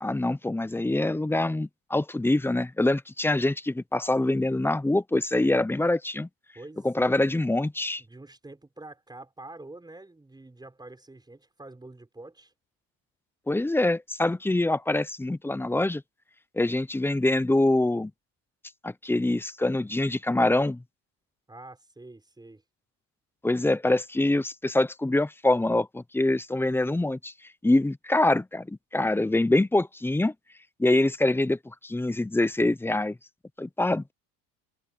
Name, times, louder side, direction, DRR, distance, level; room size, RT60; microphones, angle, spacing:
voice 1, 0.0-6.3 6.8-8.0 13.5-16.0 16.5-18.1 18.8-20.8 23.4-27.3 27.6-30.3 30.8-33.2 33.6-34.1, left 2 dB, 5° left, 0.7 m, -25 dB
voice 2, 6.6-7.2 8.0-12.5 21.5-22.6, right 2 dB, 10° right, 6.9 m, -46 dB
cardioid pair, 125°, 41 cm